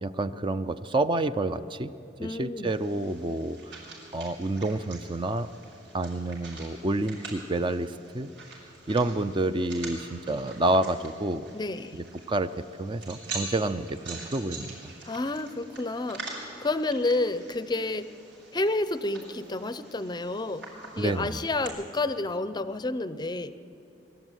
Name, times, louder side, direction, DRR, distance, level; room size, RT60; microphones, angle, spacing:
voice 1, 0.0-1.9 2.2-3.6 4.1-5.5 5.9-8.3 8.9-11.4 11.9-12.5 12.8-14.8 21.0-21.4, right 2 dB, 25° right, 12 dB, 0.5 m, -28 dB
voice 2, 2.2-2.7 11.5-12.0 15.1-16.2 16.6-18.1 18.5-20.6 21.0-23.6, left 2 dB, 25° left, 13 dB, 0.6 m, -30 dB
sound 1, 2.7-21.7, right 3 dB, 75° right, 6.6 m, -45 dB
23.5 x 13.0 x 9.1 m, 2.8 s
head